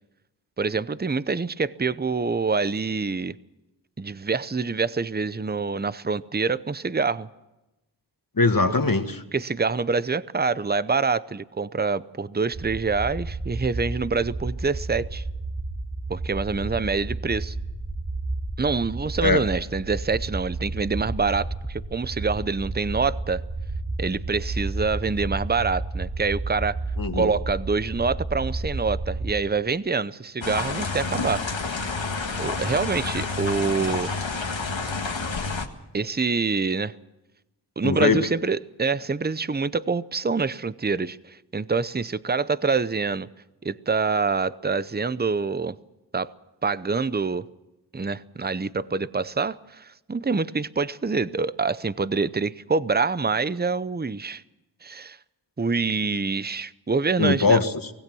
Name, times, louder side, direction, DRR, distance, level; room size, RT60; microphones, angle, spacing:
voice 1, 0.6-3.4 4.0-7.3 9.3-15.2 16.1-17.6 18.6-23.4 24.0-26.8 27.1-31.5 32.4-34.1 35.9-37.0 37.8-43.3 43.6-45.8 46.1-46.3 46.6-47.5 47.9-54.4 54.8-55.2 55.6-57.6, right 4 dB, 20° right, 16 dB, 0.7 m, -26 dB
voice 2, 8.4-9.2 19.2-19.4 27.0-27.3 37.8-38.3 57.2-57.9, left 3 dB, 50° left, 7 dB, 1.8 m, -21 dB
sound 1, 12.5-29.3, right 2 dB, 55° right, 2.8 m, -32 dB
sound 2, 30.4-35.7, left 4 dB, 85° left, 1.8 m, -29 dB
25.0 x 17.5 x 6.3 m, 0.97 s
wide cardioid pair, 45°, 44 cm